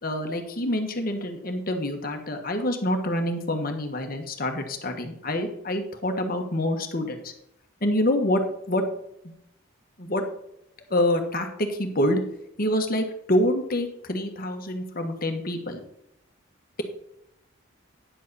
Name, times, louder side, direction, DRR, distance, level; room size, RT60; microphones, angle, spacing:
voice 1, 0.0-7.3 7.8-8.4 8.7-8.8 9.2-9.3 10.0-10.2 10.9-12.2 12.6-15.8, left 1 dB, 45° left, 4 dB, 1.4 m, -26 dB
10.0 x 7.6 x 4.2 m, 0.77 s
head